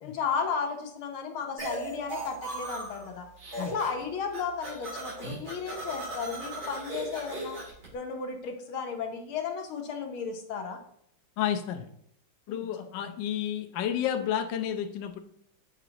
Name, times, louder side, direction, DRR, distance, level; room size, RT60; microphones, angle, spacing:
voice 1, 0.0-3.2 3.6-7.6 7.9-10.8 12.5-12.7 13.0-13.1, left 6 dB, 85° left, 4 dB, 1.9 m, -34 dB
sound 1, 1.6-3.1 3.4-4.0 4.3-7.8, right 2 dB, 45° right, 3.7 m, -37 dB
voice 2, 11.4-11.9 12.5-15.2, left 10 dB, 70° left, 4 dB, 1.3 m, -31 dB
8.3 x 6.0 x 2.9 m, 0.72 s
omnidirectional pair, 2.3 m